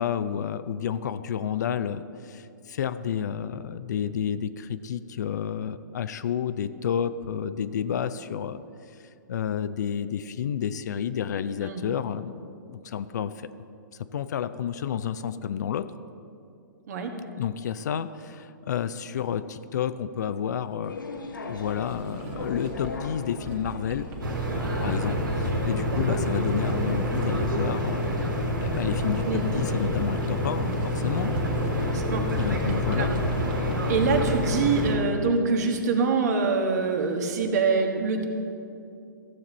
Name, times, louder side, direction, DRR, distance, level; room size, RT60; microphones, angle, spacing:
voice 1, 0.0-8.6 9.3-13.5 14.1-15.9 17.4-21.0 21.5-24.1 24.5-28.3 28.6-31.3 32.3-33.1, left 8 dB, 60° left, 13 dB, 0.5 m, -30 dB
sound 1, 20.8-27.4, left 4 dB, 80° left, 0.9 m, -41 dB
Sliding door, 21.5-33.7, right 1 dB, 40° right, 1.9 m, -40 dB
sound 2, 24.2-35.0, equal, 85° right, 2.3 m, -27 dB
voice 2, 31.9-32.2 33.0-33.1 33.9-38.2, right 4 dB, 55° right, 4 dB, 1.4 m, -25 dB
15.0 x 7.3 x 4.1 m, 2.6 s
figure-of-eight pair, 120°, 11 cm